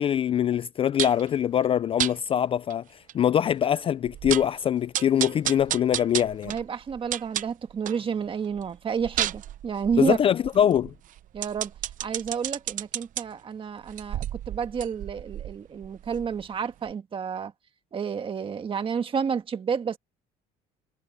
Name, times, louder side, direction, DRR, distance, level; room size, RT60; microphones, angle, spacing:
voice 1, 0.0-2.8 3.1-6.5 10.0-10.9, left 9 dB, 30° left, 0.4 m, -23 dB
sound 1, 1.0-1.3 2.0-2.1 2.7-2.8 3.1-3.2 3.6-3.7 4.0-4.6 4.9-8.0 8.4-13.2 13.8-16.5 16.9-17.0, right 12 dB, 50° right, 0.8 m, -32 dB
voice 2, 6.4-10.2 11.3-11.7 12.0-17.5 17.9-20.0, right 6 dB, 30° right, 1.6 m, -30 dB
cardioid pair, 130°, 17 cm